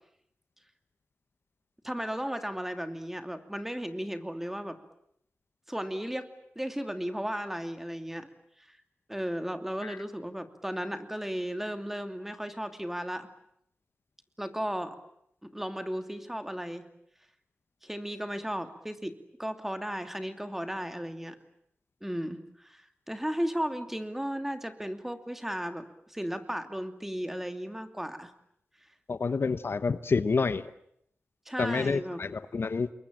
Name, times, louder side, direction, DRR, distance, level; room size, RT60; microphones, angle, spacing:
voice 1, 1.8-4.8 5.7-6.3 6.6-8.3 8.7-8.8 9.1-13.3 14.4-15.0 15.4-16.9 17.8-21.4 22.0-22.8 23.1-28.3 31.5-32.2, equal, 5° right, 8 dB, 2.7 m, -35 dB
voice 2, 29.1-30.6 31.6-32.9, left 4 dB, 60° left, 13 dB, 1.0 m, -28 dB
28.5 x 22.5 x 9.0 m, 0.72 s
wide cardioid pair, 85°, 4 cm